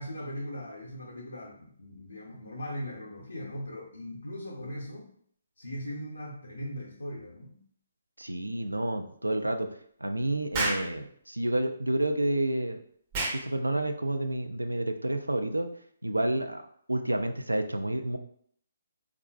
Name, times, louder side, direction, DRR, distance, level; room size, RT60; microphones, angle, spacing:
voice 1, 0.0-5.1 5.6-7.6, equal, 75° left, -3 dB, 0.6 m, -39 dB
voice 2, 8.2-9.7 10.0-12.8 13.4-15.7 16.0-16.6 16.9-18.2, right 1 dB, 85° right, 6 dB, 0.4 m, -29 dB
Explosion, 10.5-10.9 13.1-13.4, right 2 dB, 30° right, 0.6 m, -29 dB
3.7 x 2.3 x 2.3 m, 0.62 s
figure-of-eight pair, 135°, 0 cm